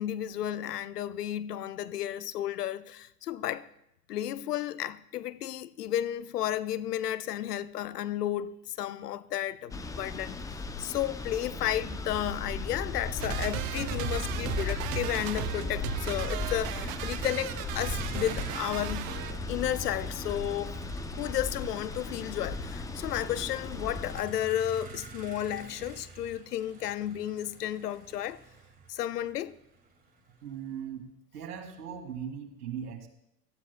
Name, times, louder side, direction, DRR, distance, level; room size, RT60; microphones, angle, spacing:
voice 1, 0.0-3.7 4.1-19.1 19.5-20.8 21.2-28.4 28.9-29.6, left 12 dB, 85° left, 0.6 m, -33 dB
sound 1, 9.7-24.2, left 3 dB, 10° left, 0.4 m, -36 dB
sound 2, 13.2-19.4, right 16 dB, 45° right, 0.5 m, -37 dB
Motor vehicle (road), 14.4-30.5, right 5 dB, 20° right, 2.1 m, -46 dB
voice 2, 30.4-31.1 31.3-33.1, right 8 dB, 75° right, 2.1 m, -39 dB
17.5 x 13.0 x 2.2 m
hypercardioid pair, 95°, 46 cm